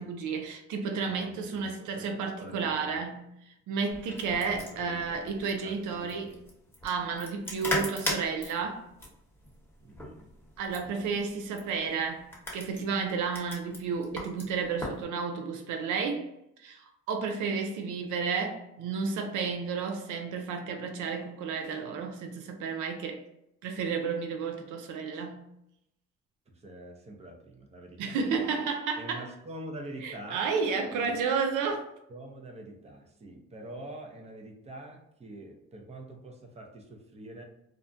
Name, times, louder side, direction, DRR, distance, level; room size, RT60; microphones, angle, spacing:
voice 1, 0.0-6.3 6.8-8.9 10.6-16.3 16.6-23.2 23.6-25.4 28.0-29.3 30.0-31.9, right 5 dB, 80° right, 0.5 m, -32 dB
voice 2, 1.0-2.1 2.4-2.9 4.5-6.4 9.8-10.3 26.5-28.2 29.0-30.5 30.9-31.2 32.1-37.4, right 1 dB, 20° right, 0.6 m, -45 dB
sound 1, 3.9-15.0, left 1 dB, 10° left, 0.9 m, -39 dB
2.5 x 2.0 x 2.6 m
cardioid pair, 90°, 30 cm